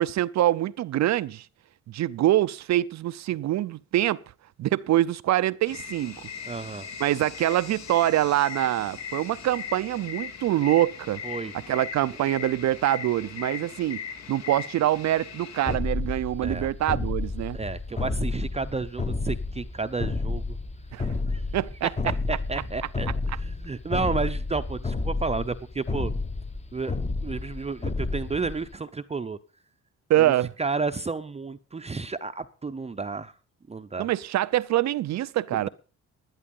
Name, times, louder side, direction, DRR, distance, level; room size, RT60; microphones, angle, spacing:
voice 1, 0.0-1.5 1.9-4.2 4.6-6.3 7.0-11.2 11.7-14.0 14.3-17.6 20.9-21.1 21.5-21.9 30.1-30.5 34.0-35.7, right 13 dB, 65° right, 0.5 m, -25 dB
swamp at night with crickets and cicadas, 5.7-15.8, left 7 dB, 60° left, 2.3 m, -39 dB
voice 2, 6.5-6.9 11.2-11.5 16.4-16.7 17.5-20.6 21.3-21.4 22.3-23.1 23.4-26.1 26.7-26.9 27.2-29.4 30.2-30.3 30.6-33.3 33.7-34.1, right 4 dB, 20° right, 0.7 m, -31 dB
sound 1, 15.7-28.8, left 3 dB, 20° left, 1.1 m, -31 dB
11.5 x 11.0 x 5.4 m
cardioid pair, 90°, 30 cm